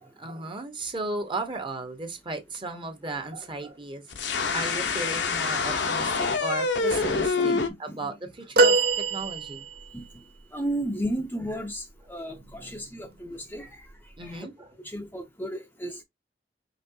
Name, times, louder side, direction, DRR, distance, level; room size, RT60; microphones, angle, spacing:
voice 1, 0.0-4.0 4.5-7.5 7.8-8.8 9.1-9.6 12.3-13.1 14.2-14.7, right 2 dB, 30° right, 1.0 m, -35 dB
sound 1, 4.1-7.7, left 4 dB, 80° left, 0.9 m, -26 dB
voice 2, 7.4-8.1 9.9-10.0 10.5-13.8 14.2-14.5 14.8-16.0, right 1 dB, 10° left, 0.6 m, -34 dB
sound 2, 8.6-10.0 12.4-12.5 13.9-14.0, right 3 dB, 55° right, 0.8 m, -23 dB
5.3 x 3.2 x 2.7 m
head